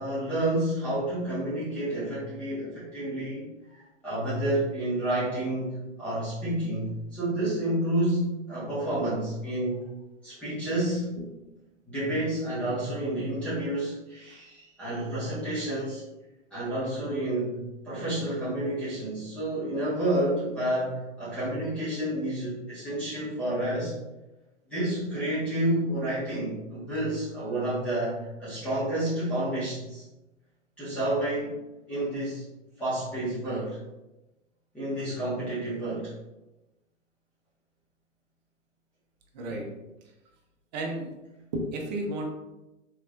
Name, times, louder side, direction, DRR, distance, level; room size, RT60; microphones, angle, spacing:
voice 1, 0.0-9.9 10.2-11.3 11.9-16.0 16.5-23.9 24.7-30.0 30.8-31.6 31.9-32.4 32.8-33.8 34.7-36.1, right 1 dB, 5° left, -13 dB, 0.4 m, -30 dB
voice 2, 39.3-39.7 40.7-41.1 41.5-42.3, right 1 dB, 35° right, 1 dB, 0.7 m, -32 dB
3.6 x 3.0 x 2.4 m, 1.0 s
figure-of-eight pair, 120°, 38 cm